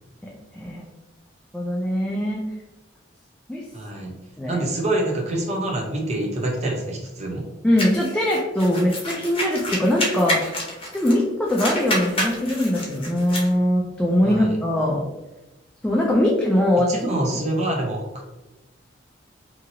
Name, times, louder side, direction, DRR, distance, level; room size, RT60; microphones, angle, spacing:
voice 1, 0.2-0.9 1.5-2.4 3.5-3.6 4.4-4.6 7.6-10.4 10.9-15.1 15.8-16.9, left 1 dB, 5° left, -3 dB, 0.3 m, -21 dB
voice 2, 3.7-4.1 4.5-7.5 14.2-14.5 16.8-18.0, right 1 dB, 35° right, 0 dB, 0.7 m, -26 dB
sound 1, 7.8-11.2 11.5-13.5, equal, 30° left, 0.8 m, -28 dB
2.8 x 2.7 x 2.6 m, 1.0 s
head